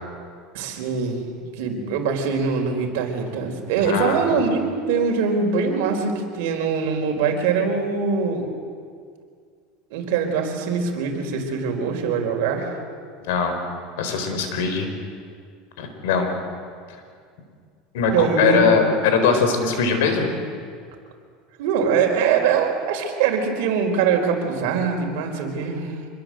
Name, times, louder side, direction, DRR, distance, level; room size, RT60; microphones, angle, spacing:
voice 1, 0.5-8.5 9.9-12.8 18.1-18.9 21.6-25.9, right 5 dB, 70° right, 3 dB, 4.5 m, -23 dB
voice 2, 3.8-4.2 13.2-13.6 14.0-14.9 15.8-16.3 17.9-20.3, left 5 dB, 80° left, 6 dB, 4.6 m, -21 dB
26.0 x 21.5 x 7.8 m, 2.1 s
supercardioid pair, 150°, 0 cm